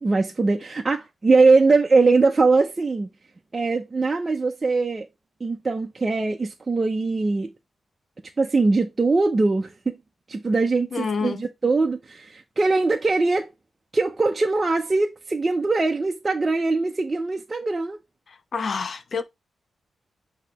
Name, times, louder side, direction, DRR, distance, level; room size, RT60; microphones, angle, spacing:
voice 1, 0.0-3.1 3.5-5.1 5.4-7.5 8.4-10.0 10.3-13.5 13.9-18.0, right 3 dB, 25° right, 0.6 m, -21 dB
voice 2, 10.9-11.4 18.5-19.2, left 5 dB, 50° left, 0.8 m, -27 dB
8.2 x 2.9 x 4.7 m
wide cardioid pair, 140°, 0 cm